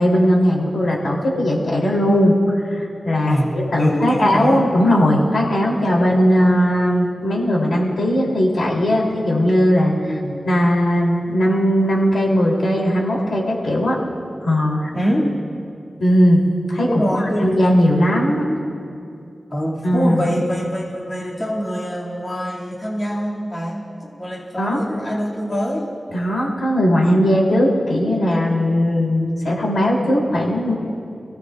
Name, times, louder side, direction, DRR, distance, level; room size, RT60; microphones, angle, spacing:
voice 1, 0.0-2.3 2.6-10.1 10.4-14.0 14.4-14.9 16.0-16.4 16.7-18.5 19.8-20.2 24.6-24.8 26.1-30.7, equal, 85° left, -3 dB, 3.1 m, -18 dB
voice 2, 3.2-4.6 10.0-10.4 14.9-15.3 16.9-17.6 19.5-25.9, equal, 30° left, -5 dB, 2.2 m, -24 dB
27.0 x 16.0 x 2.4 m, 2.6 s
wide cardioid pair, 110°, 0 cm